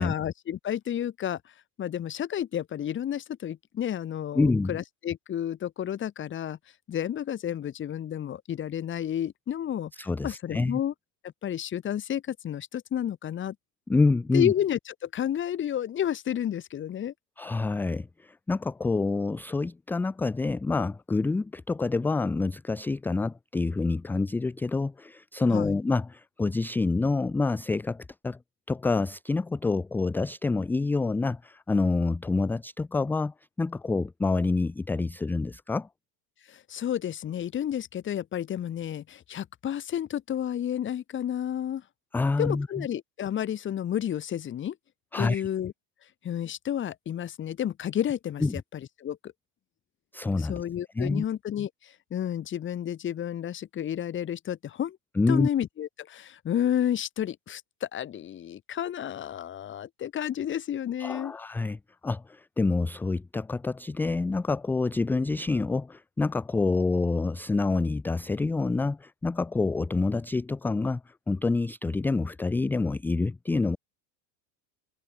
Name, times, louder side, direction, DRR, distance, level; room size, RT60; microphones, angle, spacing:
voice 1, 0.0-1.4 1.8-6.6 6.9-10.9 11.4-13.5 14.3-17.1 25.5-25.8 36.5-41.8 42.4-44.8 45.2-45.7 46.2-49.3 50.4-55.0 55.3-61.3, left 10 dB, 25° left, 4.1 m, -31 dB
voice 2, 4.3-4.7 10.0-10.8 13.9-14.5 17.4-28.4 28.7-35.9 42.1-42.9 45.1-45.4 48.4-48.6 50.1-50.6 51.0-51.2 55.2-55.5 61.0-73.8, left 3 dB, 5° left, 0.5 m, -27 dB
supercardioid pair, 165°, 50 cm